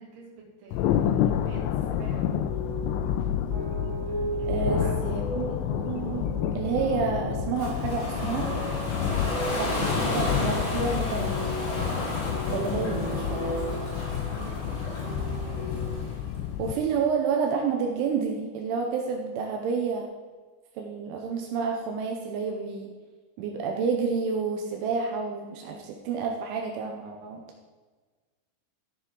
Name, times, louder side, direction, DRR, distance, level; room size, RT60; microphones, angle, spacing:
voice 1, 0.0-1.6 1.9-2.3 4.4-4.9 14.1-14.9, right 4 dB, 55° right, -4 dB, 3.9 m, -46 dB
Thunder, 0.7-16.7, left 10 dB, 85° left, 2.8 m, -29 dB
sound 1, 1.3-15.9, right 1 dB, 10° right, 2.5 m, -36 dB
voice 2, 4.5-5.6 5.9-6.2 6.5-8.6 9.5-11.4 12.5-13.3 16.6-20.1 20.8-22.9 23.4-27.4, right 5 dB, 85° right, 2 dB, 3.2 m, -29 dB
Ocean, 7.6-16.4, left 1 dB, 50° left, 5.5 m, -34 dB
15.5 x 7.0 x 3.8 m, 1.4 s
omnidirectional pair, 5.4 m